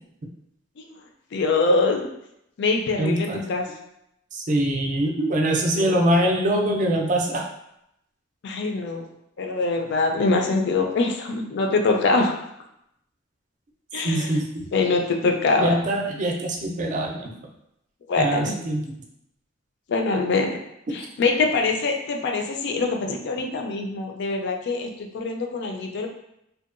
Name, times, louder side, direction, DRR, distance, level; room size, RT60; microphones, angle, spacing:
voice 1, 1.3-2.1 2.6-3.7 5.8-6.0 8.4-9.0 9.4-12.3 13.9-14.3 14.7-15.8 18.1-18.5 19.9-20.5 20.9-26.1, left 3 dB, 60° left, 3 dB, 0.4 m, -23 dB
voice 2, 3.0-3.5 4.3-7.4 14.0-14.7 15.6-17.3 18.2-18.9, right 1 dB, 40° right, 0 dB, 0.4 m, -23 dB
2.7 x 2.2 x 2.4 m, 0.80 s
head